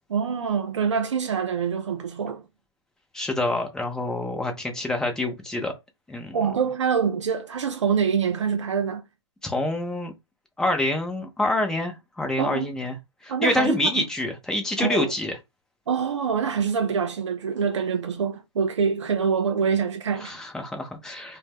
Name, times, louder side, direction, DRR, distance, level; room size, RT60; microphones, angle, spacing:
voice 1, 0.1-2.4 6.3-9.0 12.4-12.7 13.3-14.0 14.8-15.1 15.9-20.4, right 6 dB, 80° right, 0.4 m, -25 dB
voice 2, 3.1-5.7 6.1-6.4 9.4-10.1 10.6-12.9 13.2-15.3 20.2-21.4, left 2 dB, 5° left, 0.5 m, -26 dB
2.0 x 2.0 x 3.3 m
hypercardioid pair, 130°, 15 cm